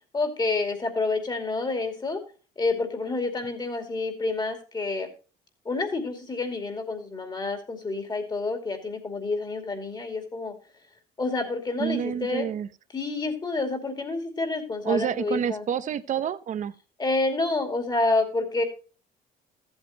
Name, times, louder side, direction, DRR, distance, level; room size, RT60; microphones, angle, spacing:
voice 1, 0.1-2.2 2.6-5.1 5.6-10.5 11.2-12.5 12.9-15.6 17.0-18.6, left 3 dB, 25° left, 2.5 m, -28 dB
voice 2, 11.8-12.7 14.8-16.7, right 8 dB, 50° right, 0.8 m, -28 dB
14.0 x 8.1 x 2.9 m
cardioid pair, 110°, 17 cm